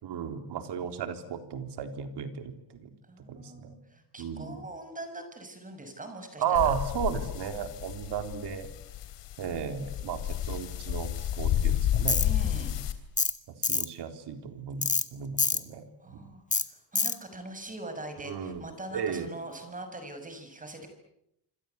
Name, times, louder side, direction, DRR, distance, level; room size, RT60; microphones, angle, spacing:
voice 1, 0.0-2.9 3.3-3.8 4.2-4.6 6.4-8.7 9.4-10.2 10.5-12.8 13.5-15.8 16.1-16.2 18.3-18.6 18.9-19.3, right 8 dB, 65° right, 7 dB, 4.0 m, -34 dB
voice 2, 3.0-6.7 12.2-12.8 16.0-20.9, right 2 dB, 15° right, 7 dB, 6.4 m, -42 dB
sound 1, 6.5-12.9, left 11 dB, 75° left, 3.5 m, -31 dB
Tools, 12.1-12.3 13.2-13.4 13.6-13.9 14.8-15.0 15.4-15.6 16.5-16.6 16.9-17.2, left 4 dB, 15° left, 1.5 m, -26 dB
26.5 x 26.5 x 8.3 m, 0.80 s
cardioid pair, 140°, 44 cm